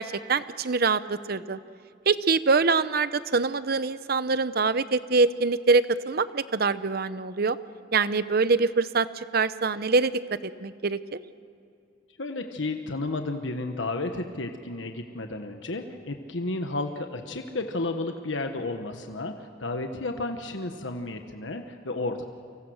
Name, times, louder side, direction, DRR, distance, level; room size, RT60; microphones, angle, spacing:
voice 1, 0.0-1.6 2.1-7.6 7.9-10.1 10.4-11.2, right 4 dB, 55° right, 14 dB, 0.8 m, -24 dB
voice 2, 12.2-22.2, left 2 dB, 80° left, 5 dB, 1.3 m, -32 dB
29.0 x 24.5 x 6.4 m, 2.5 s
head